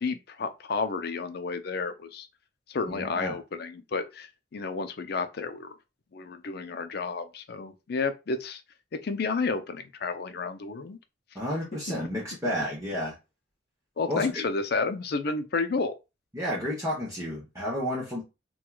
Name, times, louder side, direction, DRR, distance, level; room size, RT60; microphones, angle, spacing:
voice 1, 0.0-2.3 2.7-5.8 6.1-8.6 8.9-11.0 14.0-15.9, left 4 dB, 55° left, 0.5 m, -31 dB
voice 2, 2.9-3.4 11.3-13.1 14.1-14.3 16.3-18.2, equal, 15° right, 0.9 m, -31 dB
4.4 x 2.3 x 2.3 m
head